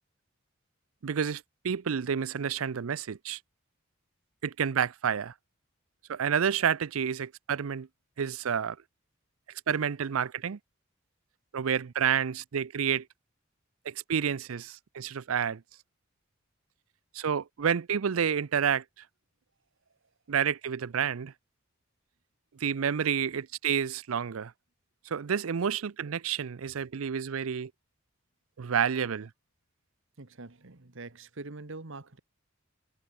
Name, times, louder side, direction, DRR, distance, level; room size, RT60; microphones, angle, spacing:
voice 1, 1.0-3.4 4.4-5.3 6.1-7.9 8.2-8.8 9.7-10.6 11.5-13.1 13.9-15.6 17.1-18.8 20.3-21.3 22.6-24.5 25.1-27.7 28.6-29.3, right 7 dB, 90° right, 0.5 m, -29 dB
voice 2, 30.2-32.2, right 3 dB, 65° right, 1.6 m, -44 dB
head